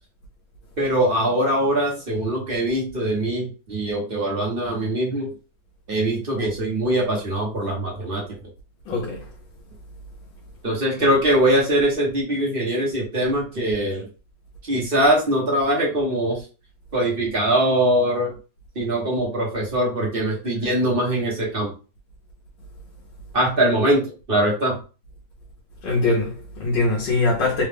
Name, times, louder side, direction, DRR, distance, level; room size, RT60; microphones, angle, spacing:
voice 1, 0.8-5.3 5.9-8.2 10.6-14.1 14.7-16.4 16.9-18.3 18.7-21.7 23.3-24.8, right 1 dB, 35° right, 1.1 m, -22 dB
voice 2, 8.8-9.3 25.8-27.6, left 3 dB, 70° left, 1.6 m, -22 dB
3.9 x 2.3 x 3.5 m
omnidirectional pair, 2.1 m